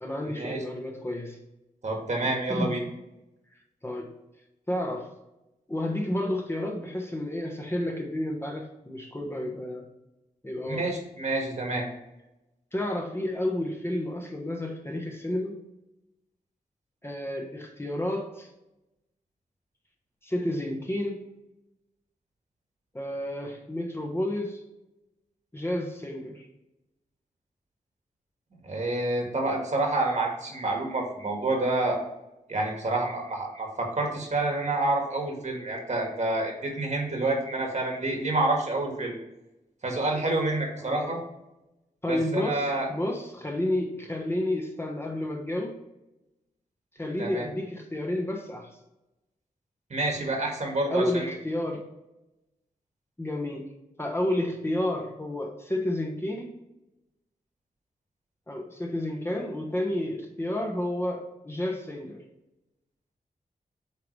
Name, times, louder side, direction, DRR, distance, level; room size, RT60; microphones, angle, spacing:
voice 1, 0.0-1.4 2.2-2.7 3.8-4.1 4.7-5.1 5.7-9.9 10.4-10.9 12.7-15.6 17.0-18.5 20.2-21.2 22.9-24.6 25.5-26.5 40.8-41.2 42.0-45.8 46.9-48.7 50.9-51.9 53.2-53.7 54.0-56.5 58.5-62.2, left 1 dB, 15° left, 1 dB, 1.1 m, -31 dB
voice 2, 1.8-2.8 10.6-11.9 28.6-32.0 32.5-39.1 39.8-41.2 42.1-42.9 47.2-47.5 49.9-51.3, right 2 dB, 50° right, 1 dB, 1.8 m, -28 dB
8.3 x 3.9 x 3.3 m, 0.94 s
wide cardioid pair, 95°, 15 cm